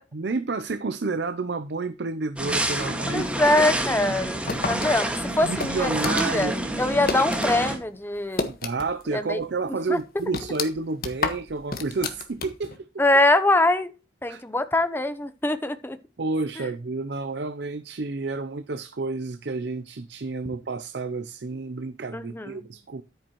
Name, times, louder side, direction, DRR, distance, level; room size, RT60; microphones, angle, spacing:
voice 1, 0.1-3.3 5.4-6.6 8.4-12.9 14.3-14.4 16.2-23.0, right 3 dB, 65° right, 0.6 m, -30 dB
sound 1, 2.4-7.8, right 1 dB, 5° right, 1.8 m, -28 dB
voice 2, 3.1-8.5 9.1-9.4 9.9-10.0 13.0-13.9 14.2-16.0 16.6-16.7 22.1-22.6, left 2 dB, 10° left, 0.7 m, -23 dB
sound 2, 4.5-7.6 7.9-9.1 9.4-9.5 9.9-12.8, left 3 dB, 50° left, 1.4 m, -31 dB
10.5 x 8.8 x 3.0 m
head